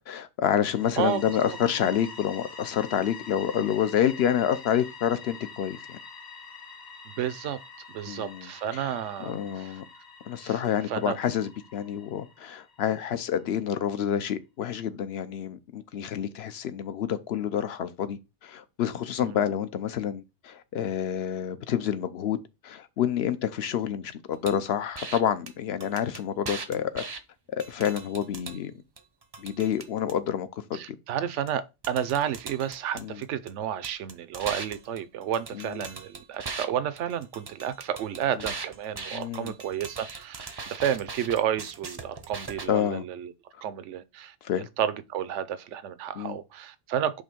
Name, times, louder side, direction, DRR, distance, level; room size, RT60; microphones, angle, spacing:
voice 1, 0.1-6.0 8.1-8.8 9.2-9.8 10.3-22.4 22.6-27.0 27.5-28.7 29.4-30.5 30.9-31.0 33.0-33.2 35.5-35.8 39.1-39.5 42.7-43.0 44.4-44.7 46.2-46.4, left 9 dB, 65° left, 0.9 m, -28 dB
sound 1, 0.5-13.2, left 5 dB, 40° left, 1.1 m, -46 dB
voice 2, 1.0-1.3 7.1-7.6 7.9-9.7 10.4-10.6 10.9-11.2 19.2-19.4 30.7-43.3 43.6-44.3 44.8-47.2, right 9 dB, 85° right, 1.0 m, -31 dB
sound 2, 24.5-24.6 25.0-25.2 25.5-25.6 25.8-27.2 27.6-28.6 29.0-30.1 31.5-31.6 31.8-33.5 33.8-36.7 37.0-42.7, right 4 dB, 30° right, 0.5 m, -39 dB
5.4 x 3.4 x 5.1 m
omnidirectional pair, 1.2 m